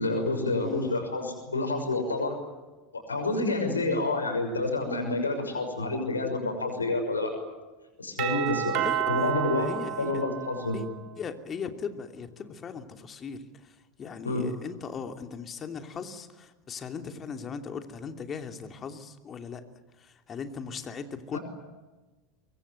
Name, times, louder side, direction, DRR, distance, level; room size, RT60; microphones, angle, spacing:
voice 1, 0.0-2.4 2.9-7.3 8.0-8.8 9.1-9.7 10.0-10.8 14.2-14.5 21.3-21.4, left 2 dB, 85° left, 5 dB, 6.2 m, -28 dB
voice 2, 0.6-1.0 8.8-10.2 10.7-10.9 11.2-19.6 20.0-21.4, left 6 dB, 30° left, 6 dB, 2.9 m, -38 dB
Doorbell, 8.2-11.0, right 11 dB, 50° right, 3.7 m, -31 dB
24.0 x 23.5 x 9.4 m, 1.2 s
figure-of-eight pair, 80°, 0 cm